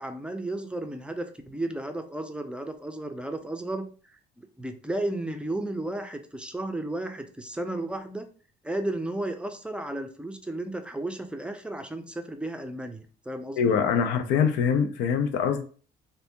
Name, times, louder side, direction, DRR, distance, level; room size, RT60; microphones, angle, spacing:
voice 1, 0.0-8.3 8.6-13.8, right 1 dB, 5° right, 0.4 m, -34 dB
voice 2, 13.6-15.6, left 7 dB, 90° left, 0.5 m, -24 dB
3.3 x 2.6 x 2.8 m
cardioid pair, 110°, 17 cm